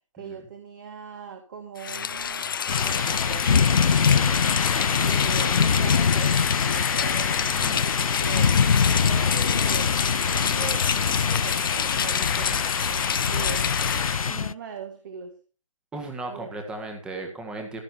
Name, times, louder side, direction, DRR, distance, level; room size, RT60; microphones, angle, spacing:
voice 1, 0.1-4.4 5.0-9.9 10.2-15.4 16.3-16.5, right 7 dB, 35° right, 6 dB, 1.8 m, -40 dB
Rain, 1.8-14.4, left 8 dB, 40° left, 0.6 m, -28 dB
sound 1, 2.7-14.5, left 6 dB, 90° left, 0.5 m, -23 dB
voice 2, 7.4-7.8 15.9-17.8, right 2 dB, 5° right, 4 dB, 1.6 m, -36 dB
16.0 x 11.5 x 2.8 m, 0.34 s
hypercardioid pair, 160°, 17 cm